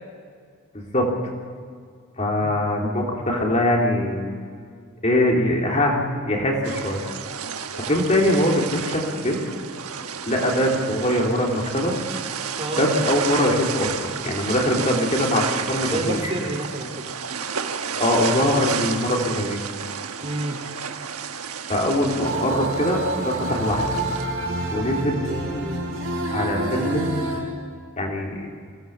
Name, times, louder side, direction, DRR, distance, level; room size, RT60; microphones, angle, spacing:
voice 1, 0.7-1.1 2.2-4.3 5.0-6.0 6.3-7.0 7.9-9.4 10.3-11.9 12.7-16.3 18.0-19.6 21.7-23.8 24.7-25.1 25.5-25.7 26.3-27.2 28.0-28.5, left 1 dB, 30° left, -1 dB, 3.3 m, -22 dB
sound 1, 6.6-24.2, right 7 dB, 85° right, 1.3 m, -31 dB
voice 2, 15.9-17.0 20.2-20.6 24.7-24.9 25.3-25.8, right 1 dB, 25° right, 1 dB, 2.8 m, -29 dB
sound 2, 22.2-27.4, right 2 dB, 60° right, 5.4 m, -28 dB
23.0 x 18.0 x 7.1 m, 2.1 s
head